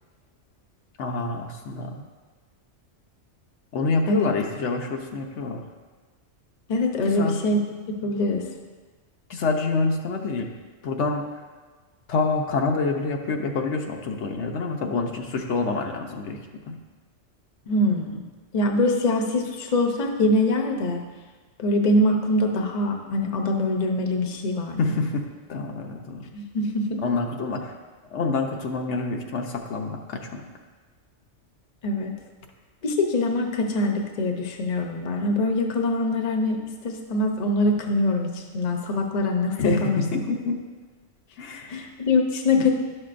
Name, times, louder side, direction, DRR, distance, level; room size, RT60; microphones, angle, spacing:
voice 1, 1.0-2.0 3.7-5.6 7.0-7.7 9.3-10.5 10.8-11.2 12.1-16.4 16.7-16.8 24.8-26.2 27.0-27.7 28.1-30.4 39.6-40.6 41.4-41.8, left 3 dB, 75° left, 2 dB, 1.1 m, -27 dB
voice 2, 6.7-7.6 7.9-8.4 17.7-18.2 18.5-21.0 21.6-25.0 26.3-27.0 31.8-32.1 32.8-39.5 39.8-40.0 41.7-42.7, left 2 dB, 40° left, 3 dB, 0.8 m, -23 dB
11.5 x 6.4 x 2.5 m, 1.4 s
omnidirectional pair, 1.2 m